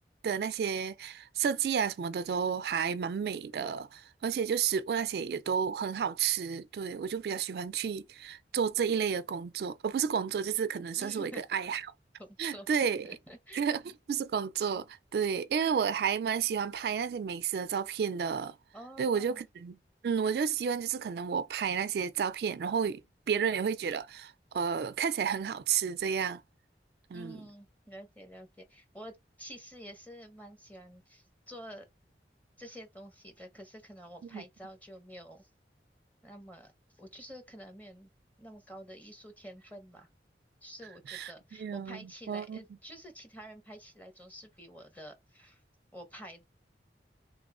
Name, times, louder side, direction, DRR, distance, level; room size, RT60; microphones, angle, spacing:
voice 1, 0.2-11.8 12.4-13.1 13.5-13.8 14.1-18.6 19.0-19.8 20.0-23.0 23.3-26.4 27.1-27.4 34.3-34.4 41.1-41.3 41.6-42.0 42.3-42.6, right 7 dB, 65° right, 0.3 m, -31 dB
voice 2, 11.0-11.4 12.2-12.7 13.0-13.6 18.7-19.4 27.1-31.9 32.6-35.5 36.2-38.1 38.4-40.1 40.6-45.6 45.9-46.4, equal, 10° left, 0.8 m, -49 dB
3.3 x 3.0 x 2.4 m
head